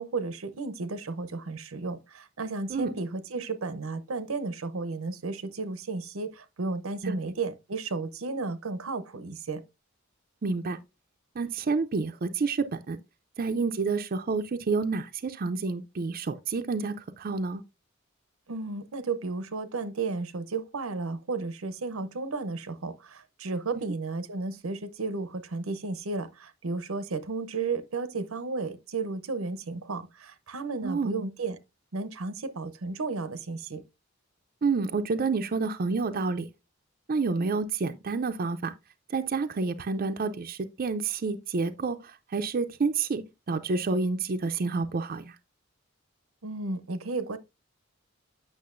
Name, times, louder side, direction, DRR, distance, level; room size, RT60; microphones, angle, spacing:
voice 1, 0.0-9.6 18.5-31.6 31.9-33.8 46.4-47.4, right 3 dB, 90° right, 0.8 m, -33 dB
voice 2, 10.4-10.8 11.4-13.0 13.4-17.6 30.8-31.2 34.6-36.5 37.1-38.7 39.1-45.4, right 4 dB, 45° right, 0.5 m, -29 dB
8.5 x 6.1 x 2.5 m
head